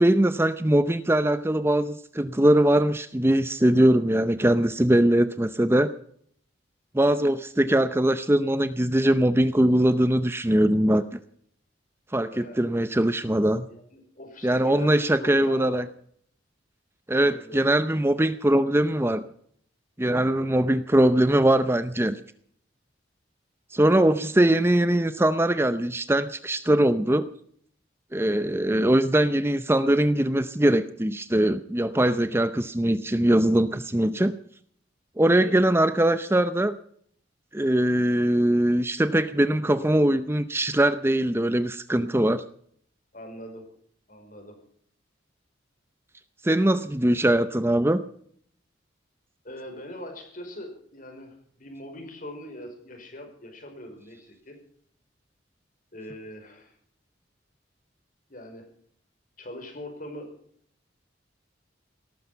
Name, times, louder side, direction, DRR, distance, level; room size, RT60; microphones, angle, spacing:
voice 1, 0.0-5.9 6.9-11.0 12.1-13.7 14.4-15.8 17.1-19.2 20.0-22.2 23.7-27.3 28.1-34.3 35.2-36.8 37.5-42.4 46.4-48.0, right 1 dB, 15° right, 12 dB, 0.6 m, -21 dB
voice 2, 12.3-12.7 13.7-15.8 17.1-17.6 24.3-24.6 32.3-32.4 35.3-35.5 43.1-43.7 44.1-44.6 49.4-54.6 55.9-56.8 58.3-58.7 59.4-60.3, left 1 dB, 45° left, 5 dB, 5.4 m, -42 dB
18.0 x 14.0 x 5.7 m, 0.62 s
head